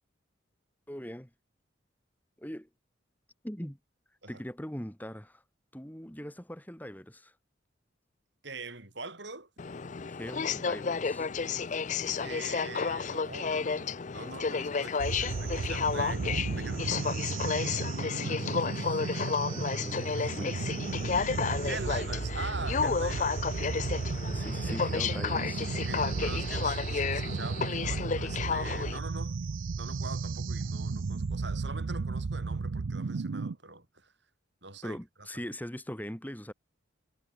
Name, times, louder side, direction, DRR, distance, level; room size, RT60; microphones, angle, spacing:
voice 1, 0.9-1.3 2.4-2.7 3.4-3.8 4.3-5.4 5.7-7.3 10.1-11.3 18.2-21.0 24.3-25.7 34.8-36.5, equal, 10° left, 2.9 m, -41 dB
voice 2, 8.4-9.5 12.2-17.2 21.6-23.4 24.1-24.2 25.7-29.4 29.8-34.1 34.6-35.0, right 3 dB, 60° right, 6.3 m, -43 dB
Aircraft, 9.6-29.0, left 5 dB, 40° left, 0.5 m, -32 dB
sound 1, 15.0-33.6, right 4 dB, 80° right, 0.6 m, -34 dB
head